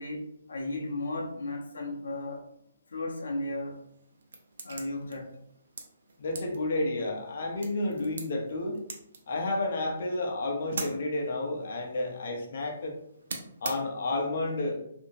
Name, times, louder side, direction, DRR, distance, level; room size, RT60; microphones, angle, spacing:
voice 1, 0.0-2.4 2.9-3.8 4.6-5.4, left 2 dB, 85° left, 0.7 m, -35 dB
sound 1, 3.7-14.3, right 3 dB, 65° right, 0.6 m, -45 dB
voice 2, 6.2-8.8 9.3-12.9 13.6-14.8, left 2 dB, 50° left, 0.7 m, -31 dB
2.8 x 2.6 x 2.6 m
hypercardioid pair, 165°, 0 cm